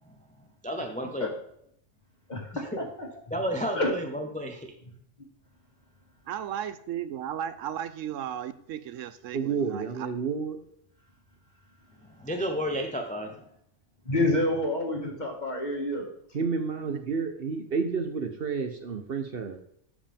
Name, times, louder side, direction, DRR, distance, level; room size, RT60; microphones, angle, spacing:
voice 1, 0.6-1.3 2.7-2.9 3.3-4.7 12.0-13.5, equal, 10° left, 3 dB, 0.6 m, -32 dB
voice 2, 2.3-3.1 3.7-3.9 5.2-5.3 14.1-16.1, left 1 dB, 35° left, 0 dB, 1.9 m, -28 dB
voice 3, 6.3-10.1, right 10 dB, 80° right, 13 dB, 0.9 m, -35 dB
voice 4, 9.3-10.6 16.3-19.6, right 5 dB, 55° right, 6 dB, 1.0 m, -30 dB
12.5 x 5.1 x 3.5 m, 0.71 s
omnidirectional pair, 1.3 m